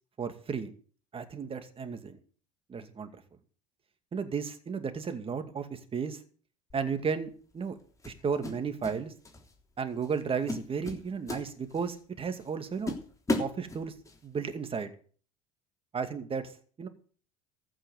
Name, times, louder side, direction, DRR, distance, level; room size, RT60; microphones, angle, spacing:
voice 1, 0.2-0.7 1.1-2.2 2.7-3.2 4.1-6.2 6.7-7.8 8.1-9.1 9.8-12.9 13.4-13.9 14.2-14.9 15.9-16.5 16.8-16.9, right 6 dB, 30° right, 9 dB, 2.3 m, -34 dB
sound 1, 6.7-6.9 8.0-9.0 9.2-9.5 10.0-10.2 10.5-12.0 12.4-12.5 12.9-14.2, left 2 dB, 20° left, 3.3 m, -34 dB
14.5 x 6.3 x 9.3 m, 0.43 s
hypercardioid pair, 70°, 18 cm